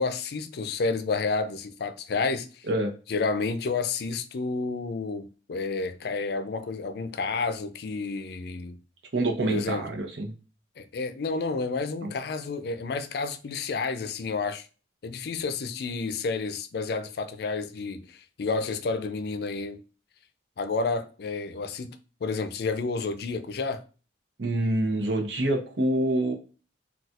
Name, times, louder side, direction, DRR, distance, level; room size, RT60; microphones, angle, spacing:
voice 1, 0.0-2.6 3.1-8.8 9.4-9.8 10.8-14.7 15.0-19.8 20.6-23.8, left 4 dB, 60° left, 0.4 m, -30 dB
voice 2, 9.1-10.3 12.0-12.1 24.4-26.3, right 1 dB, 80° right, 0.8 m, -26 dB
4.0 x 2.4 x 2.4 m
head